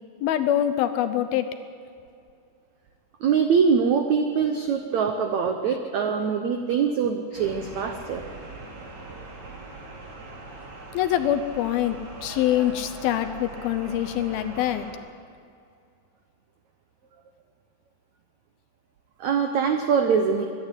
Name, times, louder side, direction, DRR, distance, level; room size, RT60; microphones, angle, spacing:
voice 1, 0.2-1.5 10.9-14.9, left 11 dB, 75° left, 9 dB, 2.4 m, -24 dB
voice 2, 3.2-8.2 19.2-20.4, right 6 dB, 85° right, 5 dB, 1.6 m, -23 dB
sound 1, 7.3-14.9, right 3 dB, 45° right, 3.8 m, -41 dB
24.0 x 11.0 x 9.9 m, 2.4 s
omnidirectional pair, 4.8 m